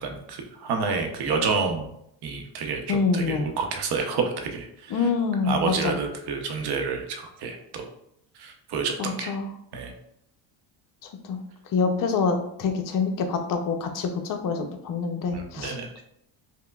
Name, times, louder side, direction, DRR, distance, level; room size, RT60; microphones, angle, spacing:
voice 1, 0.0-1.9 2.2-4.9 5.5-7.9 8.4-9.4 9.7-9.9 15.3-15.9, right 5 dB, 55° right, 4 dB, 0.8 m, -29 dB
voice 2, 2.9-3.5 4.9-5.9 9.0-9.5 11.2-11.4 11.7-15.8, left 5 dB, 45° left, 5 dB, 0.6 m, -26 dB
5.4 x 2.1 x 2.3 m, 0.76 s
cardioid pair, 100°, 48 cm